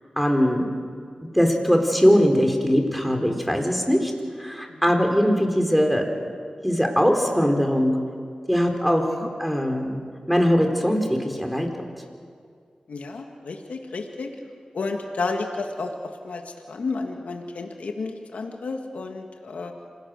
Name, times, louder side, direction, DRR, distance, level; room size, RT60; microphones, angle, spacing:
voice 1, 0.2-0.7 1.3-4.1 4.4-6.0 6.6-8.0 8.5-11.7, equal, ahead, 3 dB, 4.3 m, -21 dB
voice 2, 12.9-14.3 14.7-19.7, left 3 dB, 85° left, 3 dB, 1.8 m, -31 dB
27.0 x 18.5 x 6.5 m, 2.2 s
cardioid pair, 50°, 2 cm